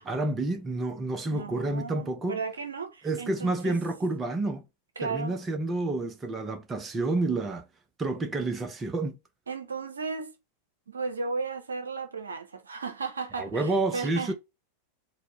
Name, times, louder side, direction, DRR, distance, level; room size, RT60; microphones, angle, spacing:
voice 1, 0.0-2.4 3.0-4.6 5.0-7.7 8.0-9.2 13.4-14.3, right 2 dB, 20° right, 0.6 m, -29 dB
voice 2, 1.3-3.8 5.0-5.4 9.5-10.3 10.9-14.3, right 4 dB, 75° right, 0.7 m, -35 dB
4.3 x 2.2 x 3.1 m
figure-of-eight pair, 90°, 0 cm